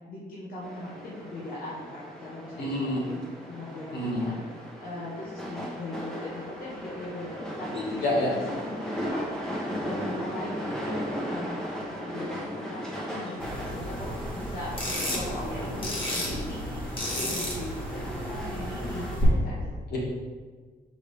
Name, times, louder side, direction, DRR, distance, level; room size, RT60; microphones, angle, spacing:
voice 1, 0.1-8.0 8.3-19.8, left 1 dB, 60° left, -7 dB, 1.4 m, -39 dB
sound 1, 0.6-19.2, equal, 5° left, 1.0 m, -37 dB
voice 2, 2.6-3.0 3.9-4.3 8.0-8.3 19.9-20.0, left 1 dB, 80° left, -4 dB, 1.9 m, -27 dB
sound 2, 13.4-19.2, equal, 30° left, 1.5 m, -33 dB
6.3 x 5.0 x 3.4 m, 1.5 s
wide cardioid pair, 155°, 17 cm